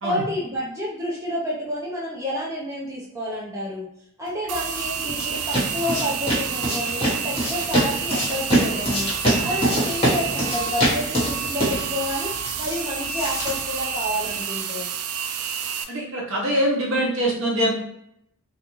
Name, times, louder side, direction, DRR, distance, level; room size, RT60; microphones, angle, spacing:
voice 1, 0.0-3.9 4.2-9.1 9.4-12.3 12.6-14.9, left 1 dB, 15° right, -6 dB, 0.5 m, -29 dB
sound 1, 4.4-14.4, right 1 dB, 25° left, 1.2 m, -25 dB
sound 2, 4.5-15.8, right 7 dB, 85° right, 0.3 m, -29 dB
voice 2, 15.9-17.7, equal, 60° right, -2 dB, 0.7 m, -23 dB
2.4 x 2.3 x 2.9 m, 0.78 s
head